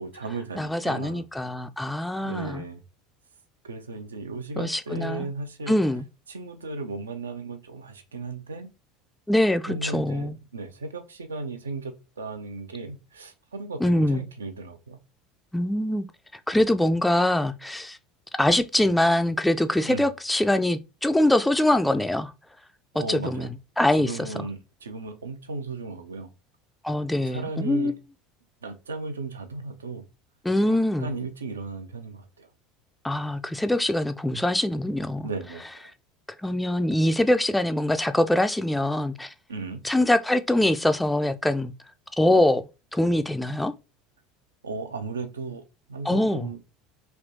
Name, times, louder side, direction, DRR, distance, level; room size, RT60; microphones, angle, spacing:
voice 1, 0.0-1.2 2.2-2.8 3.6-5.8 6.3-8.7 9.7-15.0 19.8-20.1 23.0-23.5 24.0-26.3 27.3-27.9 28.6-30.0 30.6-32.5 35.2-35.9 39.5-39.8 44.6-45.6 45.9-46.6, right 3 dB, 75° right, 0.4 m, -35 dB
voice 2, 0.6-2.6 4.6-5.3 5.7-6.0 9.3-10.4 13.8-14.2 15.5-16.1 16.5-18.0 18.4-22.3 22.9-23.5 23.8-24.3 26.8-27.9 30.4-31.1 33.0-35.3 36.4-39.3 39.8-41.7 42.1-42.6 42.9-43.7 46.1-46.5, left 1 dB, 5° left, 0.3 m, -23 dB
3.2 x 2.8 x 2.6 m
figure-of-eight pair, 70°, 0 cm